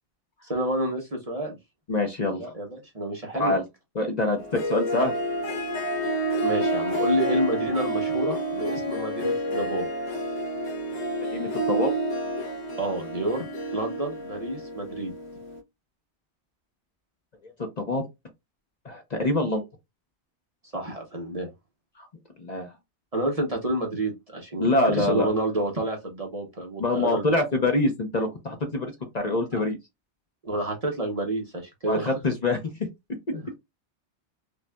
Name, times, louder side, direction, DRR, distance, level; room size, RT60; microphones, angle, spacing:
voice 1, 0.5-1.6 2.4-3.5 6.4-9.9 12.8-13.5 13.7-15.1 20.7-21.5 23.1-27.2 27.5-27.6 29.5-29.6 30.4-32.1 33.3-33.4, right 1 dB, 35° right, 0.9 m, -29 dB
voice 2, 1.9-2.5 3.3-3.6 3.9-5.1 11.3-11.9 17.4-18.0 18.8-19.7 22.0-22.1 22.4-22.7 24.6-25.3 26.8-29.8 31.9-32.7, left 2 dB, 40° left, 0.9 m, -25 dB
Harp, 4.4-15.6, right 1 dB, 90° left, 1.3 m, -29 dB
5.2 x 2.4 x 2.2 m
omnidirectional pair, 1.1 m